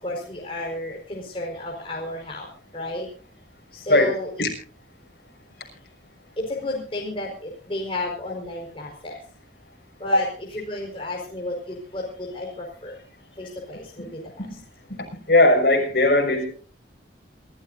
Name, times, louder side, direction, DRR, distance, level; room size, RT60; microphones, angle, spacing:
voice 1, 0.0-2.5 2.7-3.1 3.7-4.3 6.4-9.2 10.0-10.3 10.5-13.0 13.4-14.2, left 1 dB, 30° left, -2 dB, 4.8 m, -32 dB
voice 2, 3.9-4.5 10.1-10.2 14.0-14.1 14.4-14.6 14.9-16.5, left 2 dB, 60° left, 2 dB, 6.3 m, -19 dB
28.0 x 14.0 x 2.7 m, 0.39 s
head